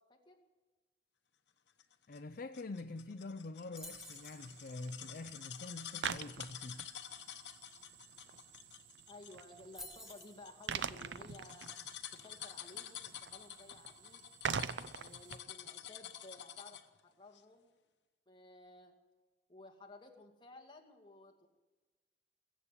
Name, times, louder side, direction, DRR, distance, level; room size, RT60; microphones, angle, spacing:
voice 1, 0.1-0.4 9.1-11.7 12.1-14.2 14.9-17.7 18.3-18.9 19.5-21.5, left 2 dB, 25° left, 2.0 m, -56 dB
sound 1, 1.8-17.0 17.3-17.4, left 10 dB, 75° left, 1.0 m, -50 dB
voice 2, 2.1-6.8, left 2 dB, 50° left, 0.5 m, -45 dB
sound 2, 3.8-4.4 8.4-8.5 8.7-9.0 9.7-10.4, left 1 dB, 5° right, 1.3 m, -50 dB
sound 3, 3.9-15.4, right 6 dB, 75° right, 0.6 m, -45 dB
22.0 x 8.3 x 7.3 m
head